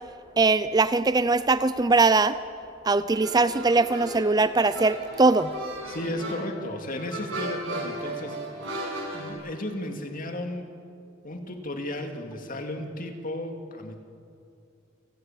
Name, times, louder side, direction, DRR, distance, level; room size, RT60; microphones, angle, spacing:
voice 1, 0.4-2.4 2.8-5.5, right 3 dB, 20° right, 13 dB, 0.5 m, -21 dB
sound 1, 3.1-9.3, right 1 dB, 70° right, 7.4 m, -36 dB
voice 2, 5.9-10.7 11.2-14.0, left 1 dB, 45° left, 4 dB, 2.6 m, -34 dB
29.5 x 18.0 x 7.5 m, 2.5 s
head